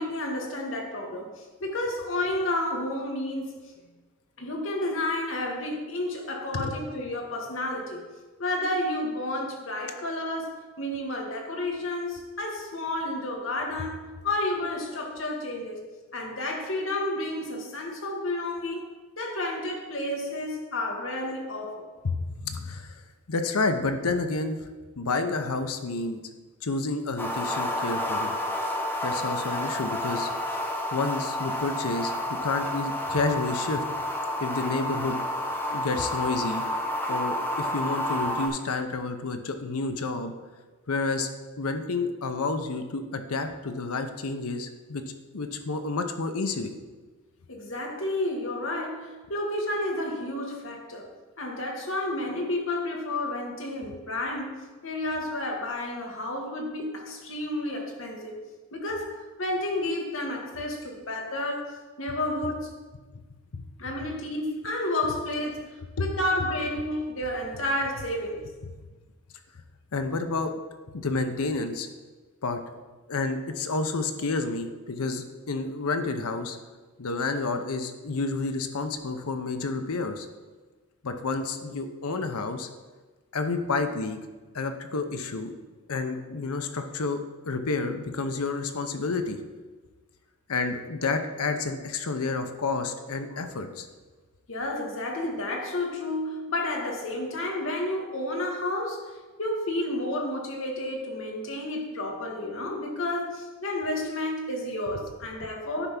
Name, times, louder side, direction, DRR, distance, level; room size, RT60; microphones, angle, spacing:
voice 1, 0.0-3.7 4.4-8.0 8.4-15.8 16.1-18.9 19.2-21.9 47.5-51.1 51.4-54.6 54.8-58.3 58.7-62.7 63.8-65.7 66.0-68.4 93.3-93.4 94.5-105.9, left 1 dB, 60° left, 0 dB, 1.5 m, -31 dB
voice 2, 22.0-23.0 23.3-24.6 25.0-26.2 26.6-28.4 29.0-30.6 30.9-32.1 32.4-33.8 34.4-35.2 35.7-36.6 37.1-40.3 40.9-41.3 41.6-46.7 63.1-63.2 63.5-63.7 66.0-66.1 69.9-70.5 70.9-71.9 72.4-72.6 73.1-76.6 77.0-80.3 81.0-82.7 83.3-84.2 84.5-85.5 85.9-89.4 90.5-93.9, left 3 dB, 80° left, 7 dB, 0.7 m, -30 dB
sound 1, 27.2-38.5, left 1 dB, 10° left, 0.8 m, -30 dB
9.8 x 3.5 x 5.7 m, 1.3 s
head